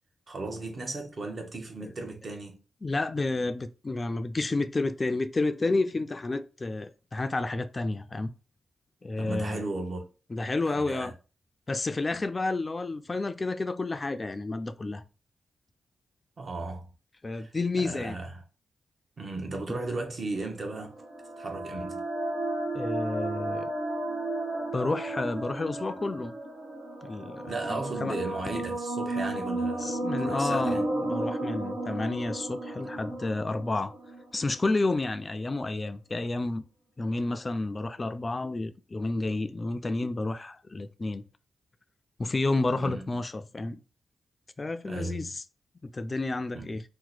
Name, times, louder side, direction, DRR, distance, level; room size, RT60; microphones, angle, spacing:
voice 1, 0.3-2.6 9.2-10.1 10.7-11.1 16.4-16.9 17.3-17.5 17.8-18.4 19.2-21.0 21.4-22.0 27.5-30.8 42.8-43.2 44.8-45.3 46.5-46.7, right 2 dB, 50° right, 0.9 m, -36 dB
voice 2, 2.8-8.3 9.0-9.6 10.3-11.1 11.7-15.0 17.2-18.2 22.7-23.7 24.7-26.3 27.0-27.4 27.7-28.2 28.5-28.7 29.8-33.9 34.3-36.7 37.0-41.2 42.2-43.8 44.6-45.4 45.8-46.8, left 2 dB, 35° left, 0.3 m, -30 dB
sound 1, 20.6-34.7, right 1 dB, 80° right, 1.3 m, -33 dB
2.9 x 2.1 x 3.9 m
cardioid pair, 70°, 0 cm